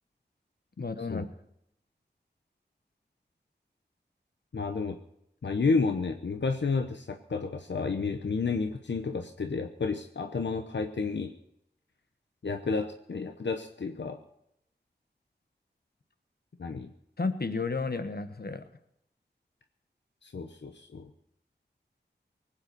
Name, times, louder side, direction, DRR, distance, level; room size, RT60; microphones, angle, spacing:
voice 1, 0.8-1.3 17.2-18.6, left 4 dB, 60° left, 10 dB, 1.3 m, -32 dB
voice 2, 4.5-5.0 5.4-11.3 12.4-14.2 16.6-16.9 20.2-21.1, left 4 dB, 85° left, 6 dB, 0.9 m, -31 dB
19.5 x 8.9 x 6.8 m, 0.77 s
wide cardioid pair, 45°, 18 cm